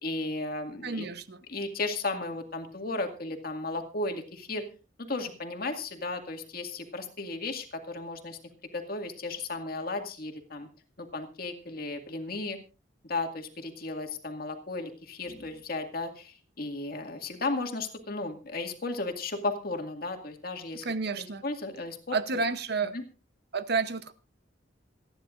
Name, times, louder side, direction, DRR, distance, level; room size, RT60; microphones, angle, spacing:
voice 1, 0.0-1.1 1.5-4.6 5.1-8.4 8.7-10.7 11.0-12.6 13.0-20.9 21.2-22.4 22.9-23.0, left 2 dB, 55° left, 5 dB, 2.1 m, -35 dB
voice 2, 0.8-1.4 20.8-21.4 22.1-23.0 23.5-24.1, right 4 dB, 60° right, 12 dB, 0.9 m, -30 dB
27.0 x 10.5 x 2.5 m, 0.34 s
head